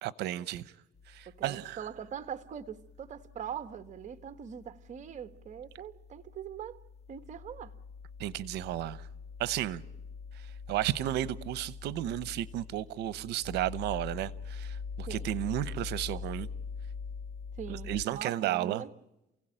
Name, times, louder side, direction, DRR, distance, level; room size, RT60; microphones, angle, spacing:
voice 1, 0.0-0.6 1.1-1.8 8.2-9.0 9.4-9.8 10.7-16.5 17.7-18.8, right 14 dB, 80° right, 0.9 m, -33 dB
sound 1, 1.0-18.0, left 5 dB, 40° left, 2.0 m, -44 dB
voice 2, 1.3-6.8 7.1-7.7 15.1-15.3 17.6-18.9, right 8 dB, 45° right, 1.3 m, -42 dB
28.5 x 16.5 x 9.0 m
cardioid pair, 110°, 17 cm